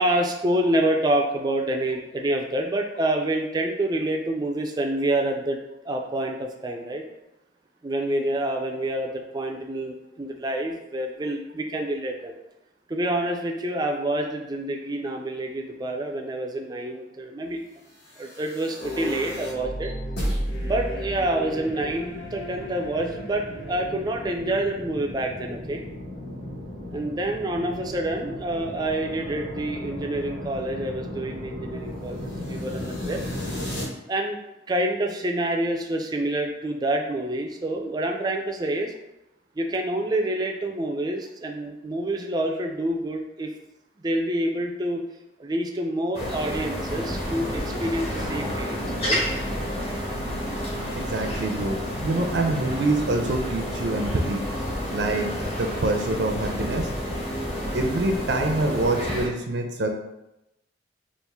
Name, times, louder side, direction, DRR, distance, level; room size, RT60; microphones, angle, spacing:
voice 1, 0.0-5.6 5.8-7.0 7.8-12.3 12.9-17.6 18.2-19.9 20.6-25.8 26.9-33.2 34.1-34.4 34.7-38.9 39.6-43.5 44.0-45.1 45.4-49.2, right 1 dB, 20° right, 2 dB, 0.4 m, -27 dB
sound 1, 18.1-33.8, equal, 65° left, 1.4 m, -35 dB
sound 2, 18.8-25.3, left 1 dB, 90° left, 1.1 m, -38 dB
sound 3, 46.1-59.3, equal, 35° left, 1.0 m, -30 dB
voice 2, 50.9-54.4 54.9-56.9 57.7-59.9, right 2 dB, 70° right, 4 dB, 0.5 m, -26 dB
4.3 x 2.5 x 3.5 m, 0.90 s
head